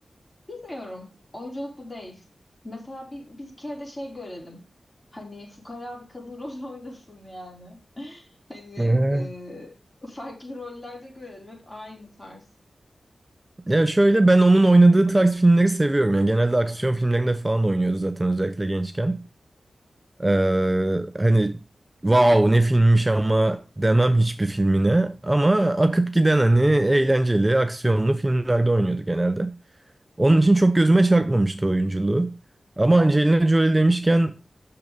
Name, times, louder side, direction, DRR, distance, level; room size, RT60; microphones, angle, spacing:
voice 1, 0.5-2.2 2.6-4.6 5.1-9.7 10.0-12.4, left 1 dB, 30° left, 4.3 m, -39 dB
voice 2, 8.8-9.3 13.7-19.2 20.2-21.6 22.0-29.5 30.2-32.3 32.8-34.4, right 2 dB, 25° right, 0.7 m, -19 dB
6.8 x 6.7 x 5.1 m
cardioid pair, 50°, 0 cm